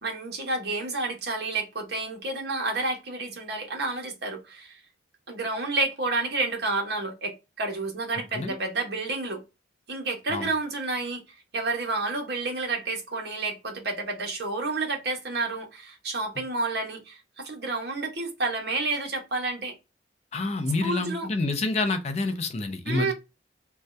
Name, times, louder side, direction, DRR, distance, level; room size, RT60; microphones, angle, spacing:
voice 1, 0.0-4.8 5.3-9.4 9.9-11.2 11.5-19.8 20.8-21.3 22.9-23.1, right 3 dB, 55° right, 1.0 m, -30 dB
voice 2, 20.3-23.1, left 3 dB, 35° left, 0.4 m, -28 dB
2.6 x 2.3 x 3.1 m
head